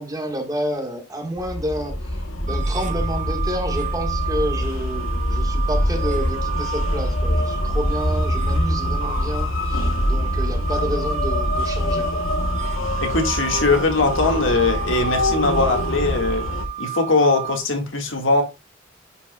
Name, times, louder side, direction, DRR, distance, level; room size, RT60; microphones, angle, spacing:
voice 1, 0.0-12.2, equal, 20° right, 1.5 m, -29 dB
sound 1, 1.4-16.7, left 1 dB, 85° left, 1.1 m, -24 dB
sound 2, 2.5-17.6, right 13 dB, 40° right, 1.2 m, -32 dB
voice 2, 13.0-16.4 16.8-18.4, left 3 dB, 70° left, 1.8 m, -20 dB
9.9 x 5.3 x 2.3 m
head